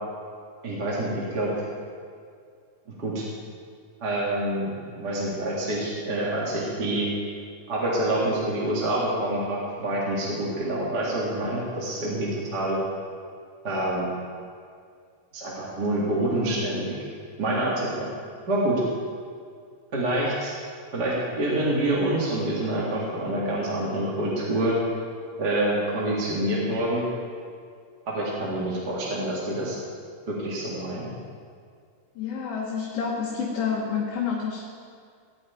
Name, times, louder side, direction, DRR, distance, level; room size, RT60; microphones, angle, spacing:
voice 1, 0.6-1.5 3.0-3.2 4.0-7.1 7.7-12.8 13.6-14.1 15.3-16.9 17.4-18.1 18.5-18.8 19.9-20.5 20.9-24.8 25.4-27.0 28.1-29.8 30.3-31.1, right 1 dB, 35° right, -6 dB, 2.4 m, -27 dB
voice 2, 32.2-34.6, left 6 dB, 60° left, -3 dB, 2.1 m, -28 dB
15.0 x 6.2 x 9.1 m, 2.2 s
omnidirectional pair, 3.5 m